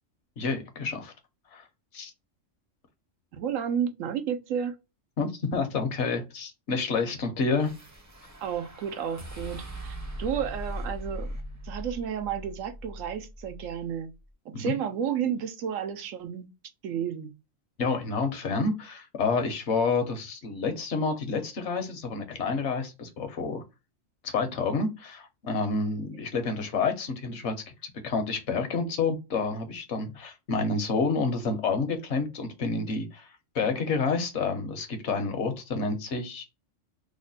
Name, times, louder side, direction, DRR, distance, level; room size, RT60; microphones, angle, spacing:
voice 1, 0.4-1.1 1.5-1.6 1.9-2.1 5.2-7.7 14.5-14.7 17.8-23.6 24.2-36.4, left 4 dB, 65° left, 1.1 m, -29 dB
voice 2, 3.3-4.7 8.4-11.3 11.6-14.1 14.6-16.5 16.8-17.3, right 8 dB, 90° right, 1.0 m, -31 dB
sound 1, 7.6-13.9, equal, 20° right, 0.5 m, -40 dB
3.1 x 2.1 x 3.9 m
omnidirectional pair, 1.3 m